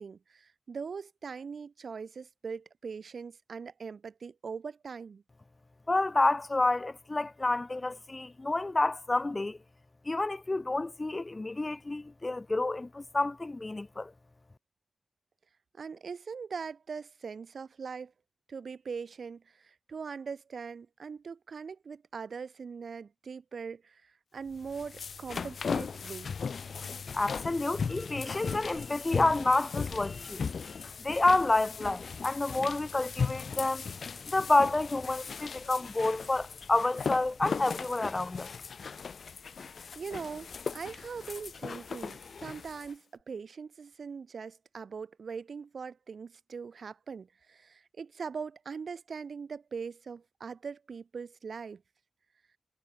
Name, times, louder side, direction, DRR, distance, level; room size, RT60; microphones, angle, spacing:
voice 1, 0.0-5.2 15.7-18.1 18.5-26.3 39.9-51.8, right 5 dB, 75° right, 5.0 m, -41 dB
voice 2, 5.9-9.6 10.0-14.1 27.1-33.9 34.3-38.5, left 2 dB, 30° left, 0.7 m, -29 dB
sound 1, 24.5-42.9, left 5 dB, 75° left, 2.6 m, -38 dB
cardioid pair, 55°, 0 cm